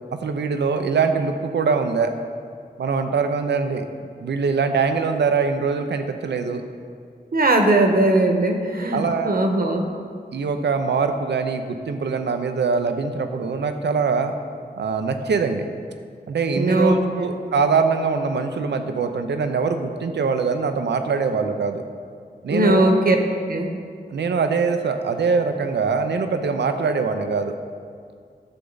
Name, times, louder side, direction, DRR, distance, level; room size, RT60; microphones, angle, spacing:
voice 1, 0.1-2.1 2.8-3.8 4.2-6.6 8.9-9.4 10.3-14.4 14.8-15.7 16.3-21.8 22.4-22.9 24.1-27.5, right 5 dB, 80° right, 7 dB, 0.7 m, -23 dB
voice 2, 7.3-9.9 16.5-17.3 22.5-23.2 23.5-23.7, right 1 dB, 60° right, 3 dB, 1.2 m, -19 dB
11.5 x 6.8 x 4.0 m, 2.1 s
cardioid pair, 50°, 18 cm